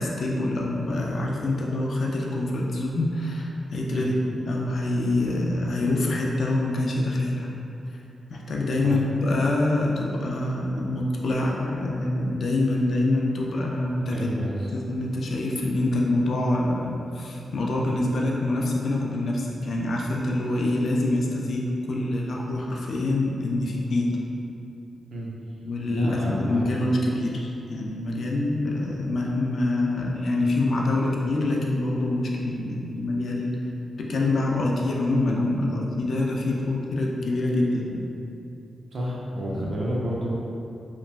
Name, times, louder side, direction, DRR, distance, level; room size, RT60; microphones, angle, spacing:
voice 1, 0.0-4.2 4.5-7.5 8.3-14.3 14.7-21.6 21.9-24.1 25.6-33.6 34.0-38.0 39.5-39.8, left 2 dB, 65° left, -2 dB, 0.3 m, -25 dB
voice 2, 14.1-14.7 25.1-25.3 25.9-26.7 38.9-40.3, right 1 dB, 65° right, -4 dB, 0.5 m, -30 dB
2.9 x 2.2 x 2.4 m, 2.7 s
wide cardioid pair, 105°, 0 cm